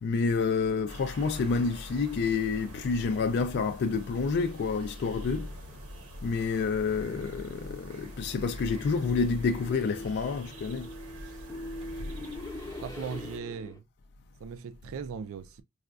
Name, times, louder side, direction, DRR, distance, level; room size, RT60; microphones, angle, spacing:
voice 1, 0.0-5.5 6.2-10.9, left 4 dB, 50° left, 0.3 m, -29 dB
sound 1, 0.9-13.4, equal, 85° right, 1.2 m, -46 dB
Engine, 5.0-12.1, left 1 dB, 25° right, 0.6 m, -46 dB
sound 2, 7.0-13.8, left 1 dB, 15° left, 0.7 m, -44 dB
voice 2, 12.8-13.8 14.4-15.6, right 6 dB, 65° right, 0.3 m, -38 dB
4.8 x 2.2 x 2.3 m
head